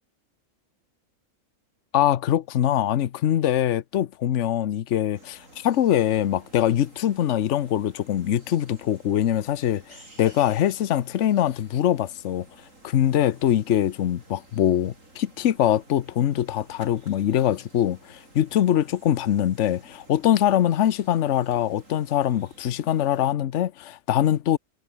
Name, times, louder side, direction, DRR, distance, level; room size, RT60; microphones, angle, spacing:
voice 1, 1.9-12.5 12.8-24.6, left 11 dB, 65° left, 1.1 m, -23 dB
sound 1, 5.1-23.3, right 2 dB, 75° right, 7.4 m, -53 dB
omnidirectional pair, 1.4 m